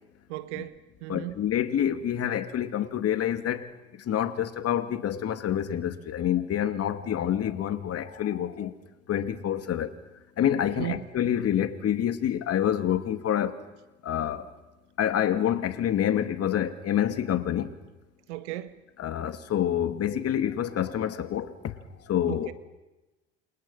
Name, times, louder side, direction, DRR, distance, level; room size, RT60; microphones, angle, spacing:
voice 1, 0.3-1.4 10.7-11.1 18.3-18.8 22.3-22.5, right 16 dB, 80° right, 1.5 m, -36 dB
voice 2, 1.1-3.7 4.0-8.7 9.1-9.9 10.4-13.7 14.0-14.5 15.0-17.8 19.0-21.7 22.1-22.5, left 10 dB, 45° left, 2.6 m, -27 dB
29.0 x 27.5 x 5.8 m
hypercardioid pair, 80°, 34 cm